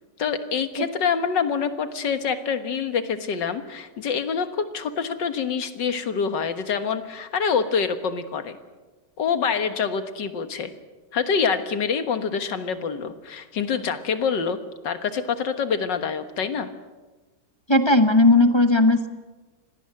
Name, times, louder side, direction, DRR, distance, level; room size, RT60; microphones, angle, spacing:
voice 1, 0.2-8.6 9.2-10.7 11.1-14.6 14.8-16.7, left 6 dB, 80° left, 9 dB, 2.1 m, -26 dB
voice 2, 17.7-19.1, left 2 dB, 20° left, 8 dB, 1.0 m, -16 dB
25.5 x 18.5 x 7.7 m, 1.2 s
omnidirectional pair, 1.9 m